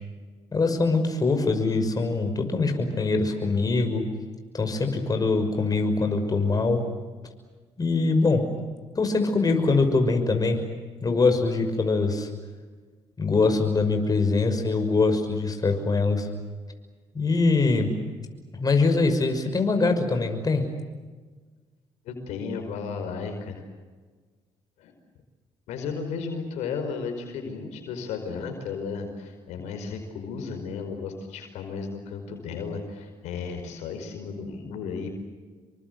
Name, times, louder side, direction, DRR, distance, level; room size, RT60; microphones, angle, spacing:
voice 1, 0.5-4.1 4.5-6.9 7.8-8.5 8.9-10.6 11.0-12.3 13.2-16.3 17.1-18.0 18.6-20.7, left 3 dB, 35° left, 5 dB, 6.0 m, -23 dB
voice 2, 22.0-23.6 24.8-24.9 25.7-35.1, left 5 dB, 80° left, 5 dB, 5.0 m, -34 dB
28.0 x 23.5 x 8.1 m, 1.4 s
supercardioid pair, 70°, 11 cm